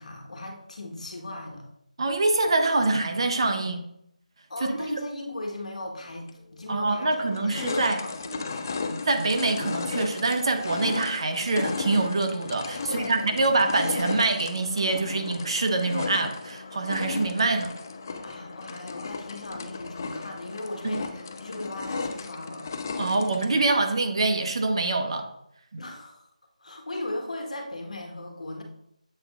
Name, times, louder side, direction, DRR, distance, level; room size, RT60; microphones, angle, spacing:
voice 1, 0.0-1.7 4.5-7.2 7.4-8.7 12.8-13.5 18.2-22.7 25.8-26.3 26.6-28.6, left 1 dB, 60° left, 2 dB, 1.5 m, -37 dB
voice 2, 2.0-3.8 4.9-5.0 6.7-8.0 8.9-17.7 20.9-21.0 23.0-25.3 25.7-25.8, right 3 dB, 40° right, 6 dB, 0.7 m, -25 dB
sound 1, 6.3-6.4 6.9-23.7, left 4 dB, 25° left, 0.4 m, -35 dB
7.7 x 3.5 x 3.6 m, 0.76 s
figure-of-eight pair, 170°, 4 cm